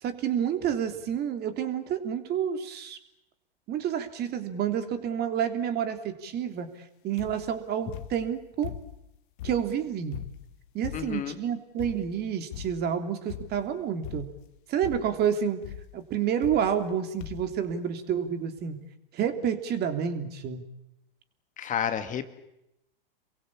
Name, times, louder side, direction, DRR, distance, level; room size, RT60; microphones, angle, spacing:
voice 1, 0.0-3.0 3.7-6.7 7.0-8.7 9.4-10.2 10.7-14.3 14.7-15.6 15.9-18.8 19.1-20.6, right 8 dB, 35° right, 8 dB, 3.3 m, -29 dB
sound 1, 7.2-7.6 7.9-9.1 9.4-11.3 11.8-12.2 12.5-12.9 13.3-13.7 14.0-14.5 14.8-15.3 15.6-15.9 16.4-16.9 17.2-17.6 18.3-18.4 18.6-18.7, left 12 dB, 55° left, 1.8 m, -41 dB
voice 2, 10.9-11.4 21.6-22.3, left 8 dB, 25° left, 9 dB, 1.9 m, -30 dB
28.5 x 22.5 x 8.7 m, 0.88 s
hypercardioid pair, 105°, 29 cm